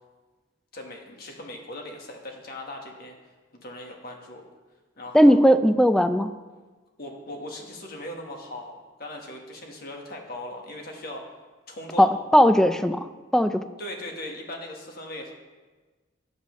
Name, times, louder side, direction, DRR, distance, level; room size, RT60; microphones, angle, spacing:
voice 1, 0.7-3.2 3.5-4.4 5.0-5.4 7.0-11.2 11.7-12.1 13.8-15.3, left 1 dB, 55° left, 1 dB, 1.4 m, -38 dB
voice 2, 5.1-6.3 12.0-13.1 13.3-13.6, equal, 5° left, 10 dB, 0.3 m, -18 dB
12.5 x 8.0 x 3.1 m, 1.3 s
head